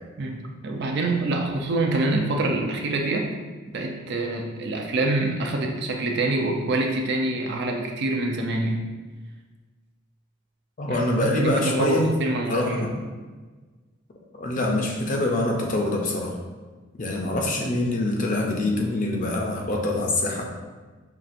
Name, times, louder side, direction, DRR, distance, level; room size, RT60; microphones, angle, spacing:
voice 1, 0.2-3.3 3.7-8.9 10.9-12.9, right 2 dB, 50° right, 2 dB, 0.4 m, -26 dB
voice 2, 10.8-12.1 12.5-12.9 14.3-16.3 17.0-20.4, left 1 dB, 35° left, 0 dB, 0.5 m, -25 dB
5.7 x 2.4 x 2.5 m, 1.3 s
head